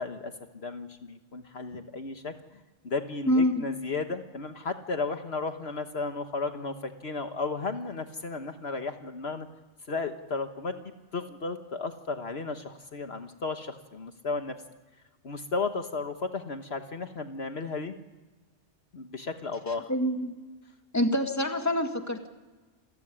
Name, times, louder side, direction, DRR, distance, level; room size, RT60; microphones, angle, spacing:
voice 1, 0.0-9.5 9.9-14.5 15.2-17.9 18.9-19.9, left 3 dB, 60° left, 7 dB, 1.5 m, -34 dB
voice 2, 3.3-3.6 19.9-20.4 20.9-22.3, left 1 dB, 15° left, 5 dB, 1.9 m, -26 dB
28.0 x 15.5 x 9.9 m, 1.3 s
omnidirectional pair, 1.2 m